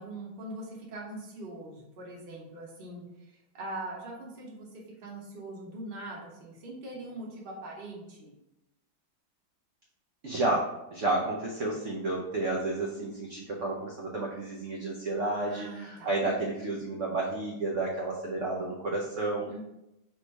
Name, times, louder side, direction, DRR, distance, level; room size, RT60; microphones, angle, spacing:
voice 1, 0.0-4.7 5.0-8.3 15.4-16.1 19.5-19.7, right 2 dB, 40° right, -3 dB, 0.9 m, -42 dB
voice 2, 10.2-19.5, right 2 dB, 85° right, -2 dB, 0.6 m, -31 dB
3.1 x 3.1 x 4.5 m, 0.90 s
omnidirectional pair, 2.1 m